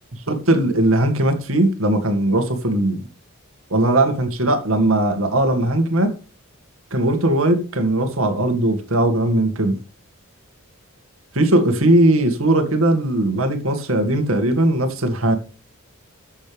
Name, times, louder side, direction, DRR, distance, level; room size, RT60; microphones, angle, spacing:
voice 1, 0.3-3.0 3.7-6.1 6.9-9.8 11.3-15.4, right 1 dB, 75° right, 2.1 m, -19 dB
13.5 x 6.6 x 3.5 m
head